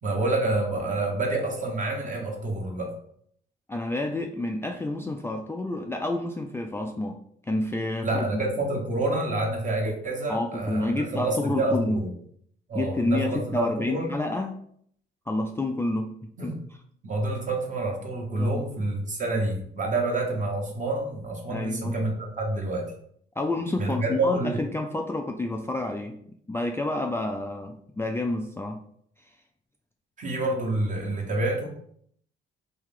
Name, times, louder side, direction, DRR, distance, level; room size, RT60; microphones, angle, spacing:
voice 1, 0.0-2.9 8.0-12.1 12.7-14.1 16.4-16.6 17.0-22.9 23.8-24.6 30.2-31.7, right 2 dB, 40° right, 1 dB, 1.1 m, -28 dB
voice 2, 3.7-7.2 7.5-8.2 10.3-12.0 12.7-14.6 15.3-16.5 18.4-18.6 21.5-22.0 23.4-26.2 26.5-28.8, left 2 dB, 10° left, 2 dB, 0.3 m, -29 dB
3.1 x 2.8 x 3.7 m, 0.65 s
cardioid pair, 90°, 20 cm